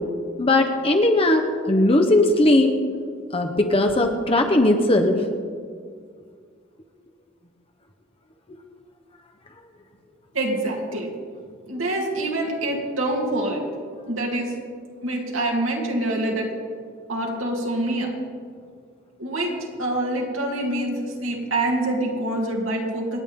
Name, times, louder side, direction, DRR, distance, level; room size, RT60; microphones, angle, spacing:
voice 1, 0.4-2.8 3.3-5.2, left 1 dB, 30° left, 4 dB, 0.9 m, -18 dB
voice 2, 10.3-11.1 11.7-13.6 14.1-14.5 15.0-16.5 17.1-18.1 19.2-23.2, right 1 dB, 80° right, -1 dB, 3.0 m, -25 dB
27.5 x 9.4 x 3.7 m, 2.1 s
head